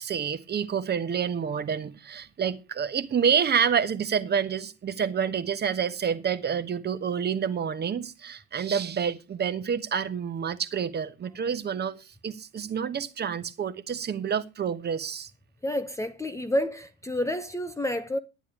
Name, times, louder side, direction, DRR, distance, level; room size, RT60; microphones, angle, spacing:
voice 1, 0.0-15.3, right 7 dB, 30° right, 1.2 m, -28 dB
voice 2, 15.6-18.2, left 1 dB, 10° left, 0.9 m, -29 dB
11.0 x 9.9 x 4.9 m
figure-of-eight pair, 65°, 35 cm